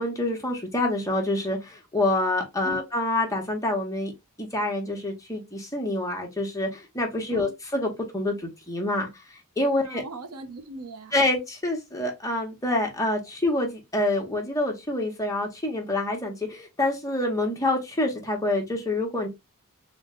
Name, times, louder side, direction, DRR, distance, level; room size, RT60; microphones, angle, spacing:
voice 1, 0.0-4.1 4.4-9.1 9.6-10.0 11.1-19.3, left 1 dB, 15° left, 1.0 m, -27 dB
voice 2, 9.8-11.2, right 1 dB, 85° right, 0.8 m, -39 dB
3.8 x 2.2 x 3.6 m
head